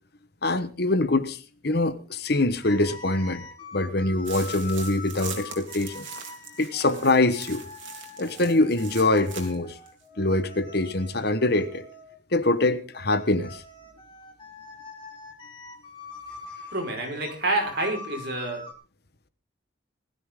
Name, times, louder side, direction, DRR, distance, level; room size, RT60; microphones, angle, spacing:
voice 1, 0.4-3.4 3.7-6.1 6.6-7.6 8.2-9.8 10.2-11.9 12.3-13.6, left 2 dB, 55° left, 1.2 m, -24 dB
sound 1, 2.6-12.2 12.9-18.7, left 3 dB, 25° left, 3.4 m, -44 dB
sound 2, 4.2-9.6 9.9-10.0, right 7 dB, 75° right, 3.6 m, -41 dB
voice 2, 16.7-18.6, right 2 dB, 55° right, 5.0 m, -28 dB
19.5 x 13.5 x 3.8 m
head